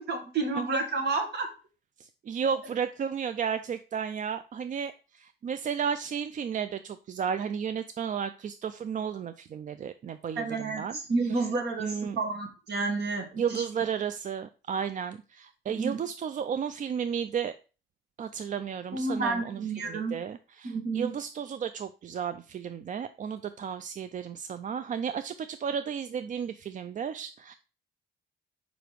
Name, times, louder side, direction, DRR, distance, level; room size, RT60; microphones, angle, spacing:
voice 1, 0.0-1.5 10.4-13.6 15.7-16.0 18.9-20.2 20.6-21.1, right 3 dB, 55° right, 3 dB, 2.0 m, -30 dB
voice 2, 2.0-11.0 11.3-11.5 11.8-12.2 13.4-17.5 18.2-27.5, right 7 dB, 40° right, 11 dB, 0.4 m, -33 dB
5.1 x 5.0 x 4.6 m, 0.35 s
cardioid pair, 90°, 20 cm